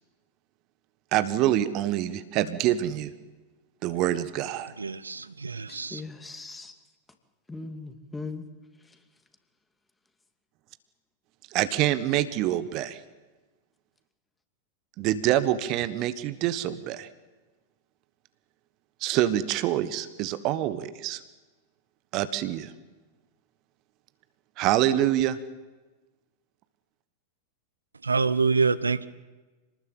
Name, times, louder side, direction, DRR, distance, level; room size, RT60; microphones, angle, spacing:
voice 1, 1.1-3.1 3.8-4.7 11.5-13.0 15.0-17.1 19.0-21.2 22.1-22.7 24.6-25.4, right 13 dB, 40° right, 14 dB, 1.4 m, -26 dB
voice 2, 4.8-6.0 28.0-29.1, right 4 dB, 75° right, 16 dB, 0.8 m, -26 dB
voice 3, 5.7-6.7 7.5-8.5, left 3 dB, 10° left, 7 dB, 2.6 m, -39 dB
27.0 x 19.5 x 8.8 m, 1.2 s
figure-of-eight pair, 90°, 0 cm